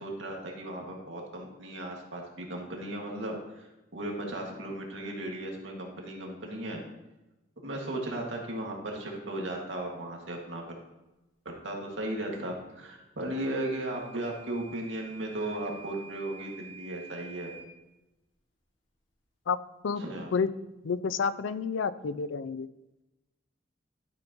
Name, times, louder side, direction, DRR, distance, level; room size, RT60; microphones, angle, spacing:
voice 1, 0.0-6.8 7.6-10.6 11.5-17.5 20.0-20.3, right 1 dB, 75° right, -1 dB, 2.1 m, -36 dB
Microwave oven / Alarm, 13.6-17.7, right 5 dB, 30° left, 3.2 m, -49 dB
voice 2, 20.8-22.7, left 5 dB, 80° left, 15 dB, 0.4 m, -29 dB
12.5 x 7.8 x 3.0 m, 0.98 s
head